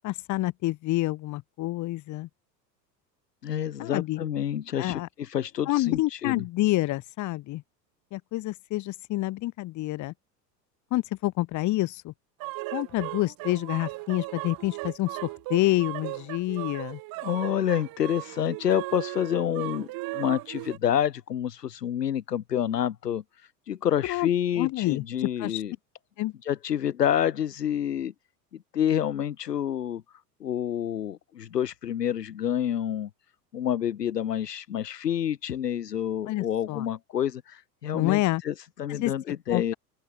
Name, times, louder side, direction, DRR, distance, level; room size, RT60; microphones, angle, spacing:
voice 1, 0.0-2.3 3.8-4.2 4.8-5.1 5.7-7.6 8.1-10.1 10.9-12.1 12.7-17.0 24.0-24.3 24.6-25.6 26.2-26.3 36.3-36.9 37.9-38.4 38.9-39.1 39.5-39.7, left 18 dB, 35° left, 2.3 m, -28 dB
voice 2, 3.4-6.4 17.2-19.9 20.1-23.2 23.7-25.7 26.5-28.1 28.7-30.0 30.4-33.1 33.5-39.7, left 10 dB, 70° left, 1.6 m, -28 dB
sound 1, 12.4-20.8, right 23 dB, 45° right, 7.4 m, -37 dB
open air
figure-of-eight pair, 85°, 50 cm